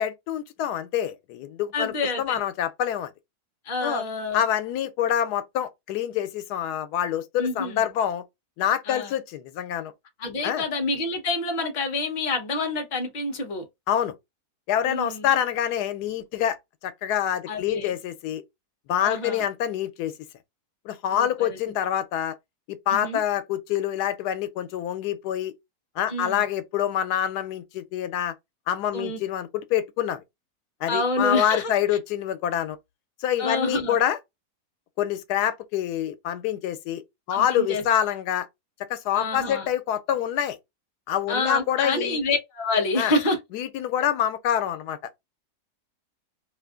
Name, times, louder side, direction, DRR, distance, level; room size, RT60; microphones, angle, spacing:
voice 1, 0.0-3.1 3.8-4.0 4.3-8.2 8.6-9.9 10.4-10.7 13.9-14.1 14.7-16.6 16.8-18.4 18.9-20.1 20.8-22.3 22.9-25.5 26.0-28.3 28.7-30.2 30.8-32.8 33.2-34.2 35.0-37.0 37.3-38.5 38.9-40.6 41.1-42.2 43.0-43.1 43.5-45.0, left 10 dB, 90° left, 1.1 m, -26 dB
voice 2, 1.7-2.4 3.7-4.4 7.4-7.8 8.9-9.1 10.2-13.7 14.8-15.3 17.5-17.9 19.0-19.4 21.1-21.6 22.9-23.2 26.1-26.4 28.9-29.2 30.9-31.7 33.4-34.0 37.3-37.8 39.1-39.7 41.3-43.4, left 2 dB, 35° left, 0.8 m, -27 dB
2.7 x 2.4 x 3.5 m
omnidirectional pair, 1.6 m